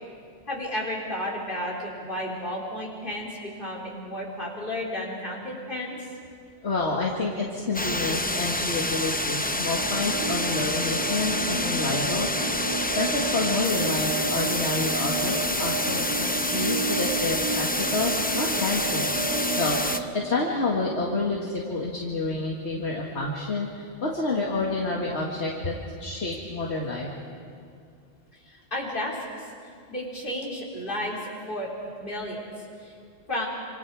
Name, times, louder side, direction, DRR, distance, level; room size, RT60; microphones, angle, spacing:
voice 1, 0.5-6.0 28.4-29.3 29.9-31.2 31.5-31.7 32.0-32.5 32.8-32.9 33.3-33.5, left 1 dB, 45° left, -4 dB, 4.3 m, -32 dB
voice 2, 6.6-12.3 13.0-19.1 19.6-27.1, left 3 dB, 70° left, -3 dB, 2.2 m, -29 dB
sound 1, 7.7-20.0, left 1 dB, 10° left, 0.5 m, -28 dB
sound 2, 9.7-20.0, right 3 dB, 55° right, 4.2 m, -32 dB
27.5 x 26.5 x 4.8 m, 2.3 s
omnidirectional pair, 1.2 m